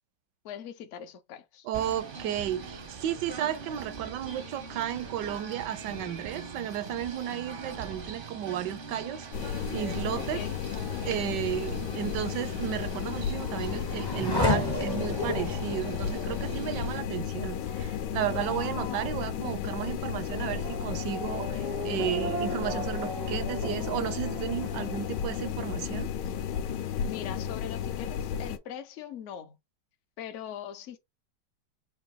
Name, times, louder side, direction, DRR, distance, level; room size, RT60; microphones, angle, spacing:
voice 1, 0.4-1.7 10.1-10.6 27.1-29.6 30.2-31.0, left 9 dB, 65° left, 0.7 m, -41 dB
voice 2, 1.6-10.4 11.0-26.1, right 11 dB, 80° right, 1.2 m, -33 dB
Singing / Bird, 1.7-17.0, right 4 dB, 50° right, 0.6 m, -43 dB
sound 1, 9.3-28.6, left 8 dB, 85° left, 1.3 m, -33 dB
Race car auto racing / Accelerating revving vroom, 13.0-26.1 26.5-27.2, left 1 dB, 30° left, 0.4 m, -35 dB
3.9 x 2.6 x 3.7 m
omnidirectional pair, 1.9 m